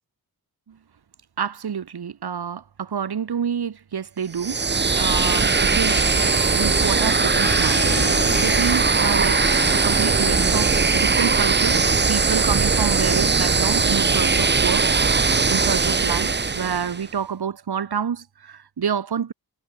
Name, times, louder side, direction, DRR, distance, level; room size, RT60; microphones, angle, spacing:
voice 1, 1.4-4.6 5.0-6.0 6.5-9.4 9.7-14.9 15.5-19.3, right 7 dB, 80° right, 3.9 m, -28 dB
sound 1, 4.4-17.0, right 4 dB, 30° right, 1.1 m, -20 dB
Harp, 4.7-12.1, left 6 dB, 50° left, 2.8 m, -34 dB
sound 2, 5.5-11.1, left 2 dB, 15° left, 6.7 m, -44 dB
wide cardioid pair, 175°, 38 cm